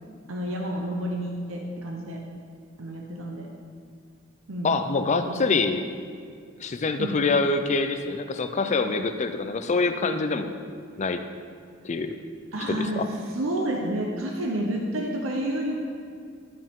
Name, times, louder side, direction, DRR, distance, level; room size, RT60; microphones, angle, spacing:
voice 1, 0.3-2.2 2.8-3.5 4.5-4.8 5.2-5.6 7.0-7.2 12.5-13.1 13.3-15.8, right 1 dB, 85° right, 0 dB, 0.8 m, -30 dB
voice 2, 4.6-5.8 6.6-10.6 11.0-11.2 11.8-12.2 12.7-13.1, left 3 dB, 35° left, 8 dB, 0.5 m, -25 dB
13.0 x 5.3 x 3.7 m, 2.2 s
head